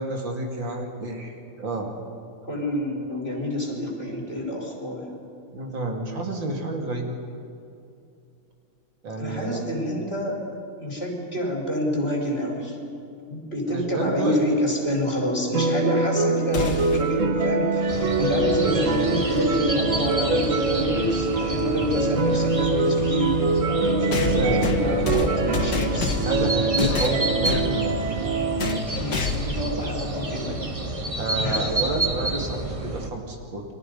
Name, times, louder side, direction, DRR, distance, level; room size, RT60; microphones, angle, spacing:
voice 1, 0.0-1.9 5.5-7.1 9.0-9.6 13.7-14.4 24.2-25.6 26.2-28.0 31.2-33.7, right 2 dB, 90° right, 1 dB, 3.3 m, -29 dB
voice 2, 2.4-5.1 9.2-10.5 10.8-12.8 13.3-23.4 23.8-26.2 27.0-27.2 28.9-30.6 31.4-31.7, equal, 30° left, 0 dB, 4.8 m, -27 dB
sound 1, 15.5-28.8, right 3 dB, 50° right, 1.3 m, -24 dB
sound 2, 16.5-17.1 19.2-19.3 20.4-20.5 24.1-26.4 26.8-27.7 28.6-28.8 29.1-29.6, left 4 dB, 65° left, 2.3 m, -28 dB
sound 3, 17.9-33.1, right 2 dB, 20° right, 1.5 m, -30 dB
29.5 x 23.0 x 5.5 m, 2.5 s
omnidirectional pair, 2.0 m